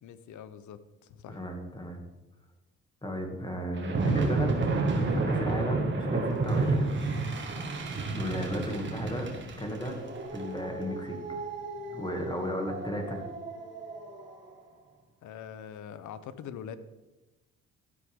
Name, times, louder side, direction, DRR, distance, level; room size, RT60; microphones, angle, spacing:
voice 1, 0.0-1.4 15.2-16.8, left 8 dB, 75° left, 14 dB, 0.8 m, -43 dB
voice 2, 1.3-2.0 3.0-7.0 8.1-9.3 9.6-10.0 10.3-11.4 11.9-13.2, equal, 15° left, 3 dB, 2.3 m, -34 dB
sound 1, 3.8-14.3, right 3 dB, 40° right, 2.0 m, -31 dB
13.0 x 9.4 x 3.7 m, 1.1 s
cardioid pair, 90°, 30 cm